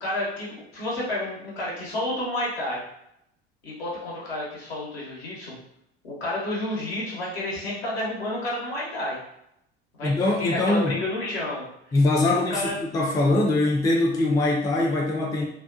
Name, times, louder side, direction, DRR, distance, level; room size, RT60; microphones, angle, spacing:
voice 1, 0.0-2.8 3.6-5.6 6.0-9.2 10.0-10.1 10.4-11.7 12.2-12.7, left 1 dB, 75° left, -4 dB, 1.0 m, -30 dB
voice 2, 10.0-11.0 11.9-15.4, left 2 dB, 10° left, -1 dB, 0.4 m, -22 dB
2.4 x 2.2 x 2.4 m, 0.77 s
figure-of-eight pair, 70°, 32 cm